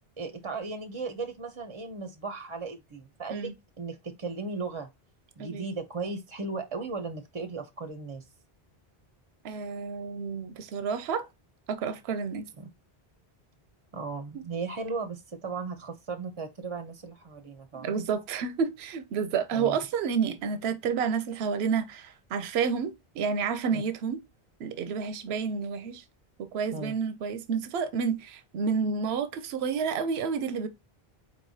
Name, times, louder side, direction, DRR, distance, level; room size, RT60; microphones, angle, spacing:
voice 1, 0.2-3.5 3.8-4.9 5.4-8.2 12.6-12.7 13.9-18.0 19.5-19.8 23.7-23.8 26.7-26.9, right 4 dB, 35° right, 0.5 m, -36 dB
voice 2, 9.4-11.3 11.7-12.5 17.7-24.2 24.6-26.0 26.5-30.7, right 6 dB, 90° right, 0.8 m, -30 dB
4.7 x 4.2 x 2.7 m
omnidirectional pair, 1.0 m